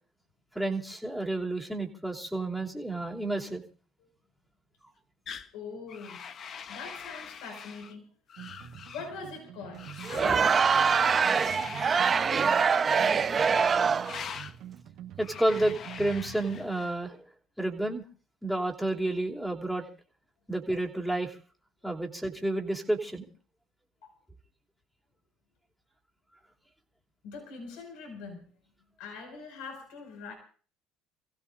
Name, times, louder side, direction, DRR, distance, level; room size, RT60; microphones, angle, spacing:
voice 1, 0.5-3.6 15.2-17.2 17.6-18.0 18.4-19.8 20.5-21.3 21.8-23.3, right 1 dB, ahead, -1 dB, 2.9 m, -30 dB
sound 1, 5.3-5.5 5.9-7.9 8.3-9.1 9.8-10.5 11.1-12.2 12.9-13.4 14.0-14.6 15.2-16.9, left 7 dB, 50° left, 1.0 m, -43 dB
voice 2, 5.5-6.2 6.7-8.1 8.9-14.0 24.0-24.1 27.2-28.4 29.0-30.3, left 4 dB, 80° left, 2 dB, 5.6 m, -43 dB
sound 2, 8.4-16.7, right 10 dB, 65° right, 1.4 m, -46 dB
Crowd, 10.1-14.2, right 6 dB, 35° right, 0.9 m, -24 dB
29.0 x 16.0 x 2.6 m, 0.41 s
supercardioid pair, 90°, 0 cm